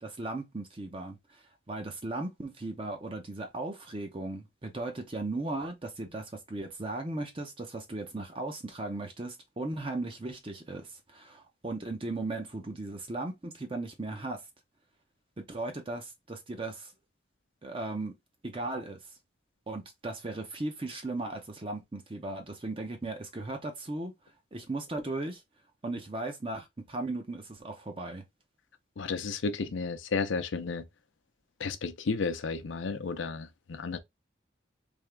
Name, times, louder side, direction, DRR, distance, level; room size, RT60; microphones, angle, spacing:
voice 1, 0.0-14.4 15.4-16.9 17.6-18.2 18.4-19.0 19.7-24.1 24.5-25.4 25.8-28.2, right 2 dB, 30° right, 0.6 m, -37 dB
voice 2, 29.0-30.8 31.6-34.0, left 4 dB, 80° left, 0.6 m, -32 dB
3.5 x 2.8 x 3.3 m
head